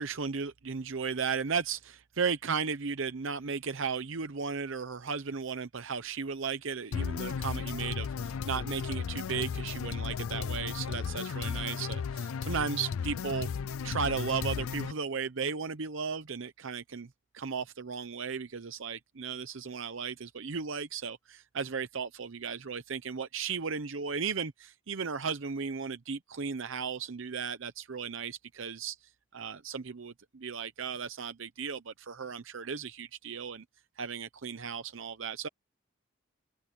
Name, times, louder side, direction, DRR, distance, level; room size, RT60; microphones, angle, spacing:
voice 1, 0.0-13.5 13.8-33.6 34.0-35.5, right 5 dB, 60° right, 0.7 m, -35 dB
sound 1, 6.9-14.9, left 6 dB, 75° left, 0.4 m, -35 dB
head